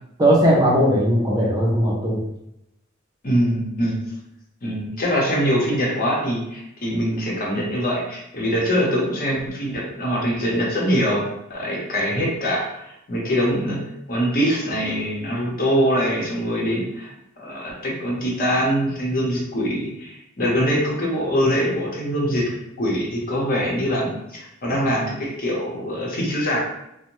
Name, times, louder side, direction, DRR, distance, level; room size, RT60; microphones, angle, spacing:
voice 1, 0.2-2.2, equal, 20° right, -4 dB, 0.5 m, -18 dB
voice 2, 3.2-4.0 4.6-13.8 14.1-22.5 22.8-26.6, equal, 45° left, -3 dB, 0.7 m, -23 dB
2.5 x 2.0 x 2.9 m, 0.81 s
head